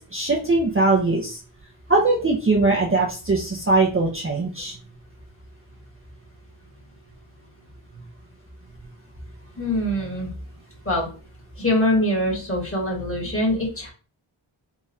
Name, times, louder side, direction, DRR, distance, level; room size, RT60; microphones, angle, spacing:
voice 1, 0.1-1.4 1.9-4.8, right 3 dB, 25° right, -2 dB, 0.6 m, -21 dB
voice 2, 9.6-10.3 10.8-11.1 11.6-13.9, left 1 dB, 25° left, -2 dB, 1.5 m, -23 dB
3.8 x 2.4 x 2.7 m, 0.35 s
wide cardioid pair, 65°, 49 cm